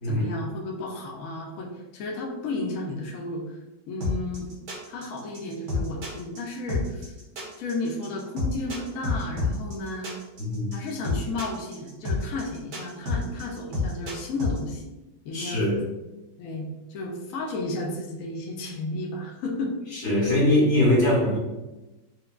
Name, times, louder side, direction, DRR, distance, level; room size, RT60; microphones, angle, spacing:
voice 1, 0.0-3.6 3.9-4.5 4.9-7.1 7.6-10.1 10.7-14.8 15.2-15.6 16.4-19.8, left 2 dB, 75° left, -1 dB, 0.7 m, -33 dB
sound 1, 4.0-14.6, left 3 dB, 60° right, 1.4 m, -28 dB
voice 2, 10.4-10.8 15.3-15.8 19.9-21.4, left 1 dB, 55° left, -6 dB, 1.7 m, -22 dB
4.5 x 2.2 x 2.3 m, 1.1 s
omnidirectional pair, 1.9 m